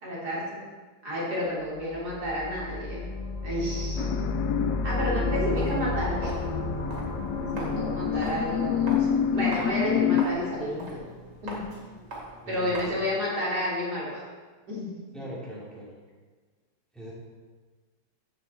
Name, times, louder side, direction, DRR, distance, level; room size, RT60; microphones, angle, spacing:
voice 1, 0.0-0.6 1.0-3.0 3.4-4.1 4.8-6.3 7.5-11.0 11.4-11.6 12.5-14.2 14.7-14.9, equal, 55° right, -6 dB, 3.6 m, -30 dB
sound 1, 1.7-10.6, left 2 dB, 55° left, 0.4 m, -32 dB
sound 2, 4.0-10.3, left 9 dB, 70° left, 0.9 m, -28 dB
Walk footsteps, 5.5-13.1, right 2 dB, 85° right, 3.2 m, -42 dB
voice 2, 12.4-13.1 15.1-15.9 16.9-17.1, equal, ahead, -6 dB, 2.7 m, -41 dB
14.0 x 8.6 x 4.3 m, 1.4 s
omnidirectional pair, 2.1 m